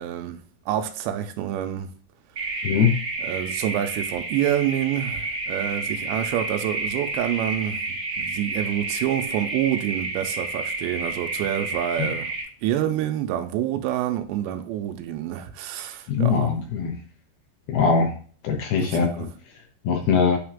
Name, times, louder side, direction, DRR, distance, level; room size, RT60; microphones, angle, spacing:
voice 1, 0.0-1.9 3.2-12.3 12.6-16.7 18.8-19.3, right 11 dB, 85° right, 2.8 m, -27 dB
sound 1, 2.4-12.4, right 3 dB, 40° right, 1.1 m, -30 dB
voice 2, 16.1-16.9 17.7-18.1 18.4-19.3 19.9-20.4, left 6 dB, 75° left, 2.5 m, -21 dB
8.8 x 3.3 x 3.6 m
omnidirectional pair, 5.1 m